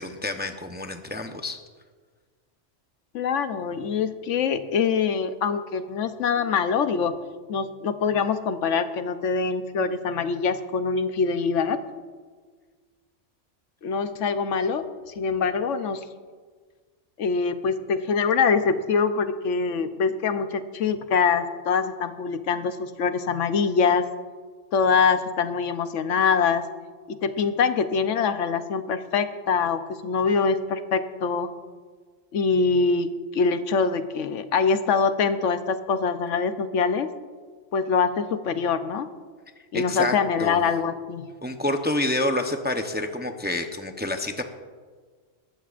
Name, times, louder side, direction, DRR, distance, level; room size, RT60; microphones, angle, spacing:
voice 1, 0.0-1.6 39.7-40.6 41.4-44.4, left 1 dB, 10° right, 5 dB, 0.6 m, -28 dB
voice 2, 3.1-7.2 7.5-11.8 13.8-16.0 17.2-24.1 24.7-26.7 27.1-31.5 32.3-37.1 37.7-39.1 39.7-41.3, left 5 dB, 80° left, 10 dB, 1.1 m, -24 dB
19.5 x 14.5 x 2.5 m, 1.5 s
omnidirectional pair, 1.2 m